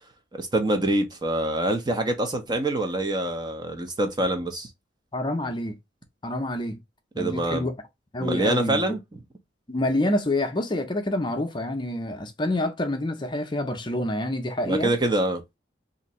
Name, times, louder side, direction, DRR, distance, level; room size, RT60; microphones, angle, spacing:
voice 1, 0.3-4.7 7.2-7.7 8.2-9.0 14.6-15.4, right 1 dB, 25° right, 0.6 m, -25 dB
voice 2, 5.1-5.7 6.2-6.8 7.1-7.7 8.1-8.8 9.7-14.9, left 1 dB, 25° left, 0.6 m, -27 dB
2.8 x 2.5 x 4.1 m
head